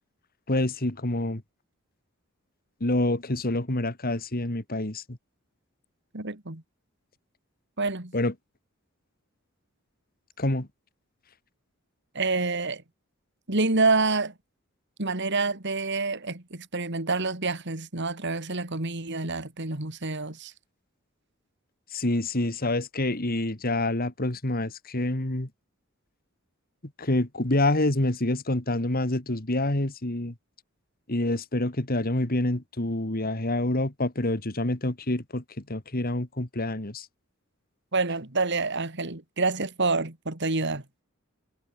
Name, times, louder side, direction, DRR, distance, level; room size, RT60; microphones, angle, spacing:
voice 1, 0.5-1.4 2.8-5.2 8.1-8.3 10.4-10.7 21.9-25.5 27.0-30.3 31.1-37.1, left 1 dB, 45° left, 2.5 m, -27 dB
voice 2, 6.1-6.6 7.8-8.1 12.1-12.8 13.5-14.3 15.0-20.5 37.9-40.8, right 3 dB, 55° right, 2.8 m, -27 dB
head